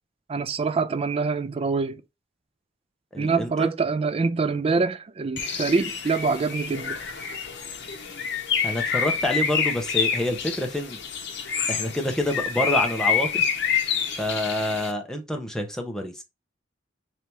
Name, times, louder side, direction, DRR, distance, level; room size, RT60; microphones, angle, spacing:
voice 1, 0.3-2.0 3.2-7.0, right 4 dB, 30° right, 0.3 m, -25 dB
voice 2, 3.1-3.7 8.6-11.0 11.7-13.5 14.2-16.2, left 1 dB, 5° left, 0.7 m, -27 dB
Bird, 5.4-14.9, left 6 dB, 65° left, 0.8 m, -27 dB
3.4 x 2.8 x 4.4 m
head